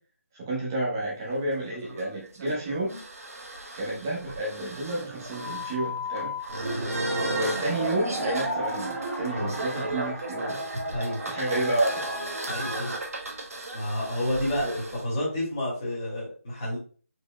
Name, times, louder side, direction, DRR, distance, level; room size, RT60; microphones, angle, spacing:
voice 1, 0.4-3.0 3.7-6.3 7.2-10.6 11.3-12.0, right 1 dB, 15° right, -5 dB, 0.9 m, -30 dB
sound 1, 1.3-15.0, right 1 dB, 75° right, 1.2 m, -36 dB
sound 2, 6.5-13.0, right 1 dB, 35° right, 1.7 m, -34 dB
voice 2, 12.5-12.9 13.7-16.8, left 1 dB, 20° left, -7 dB, 2.2 m, -30 dB
4.9 x 4.7 x 2.2 m, 0.40 s
figure-of-eight pair, 175°, 8 cm